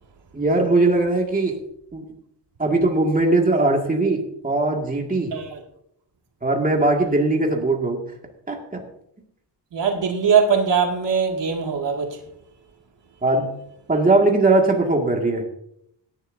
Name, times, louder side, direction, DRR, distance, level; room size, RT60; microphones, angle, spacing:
voice 1, 0.3-1.6 1.9-2.1 2.6-5.3 6.4-8.0 8.5-8.8 13.2-13.5 13.9-15.4, right 2 dB, 20° right, 1 dB, 2.0 m, -20 dB
voice 2, 9.7-12.2, right 6 dB, 80° right, 1 dB, 2.2 m, -21 dB
17.5 x 11.0 x 2.7 m, 0.73 s
wide cardioid pair, 145°, 43 cm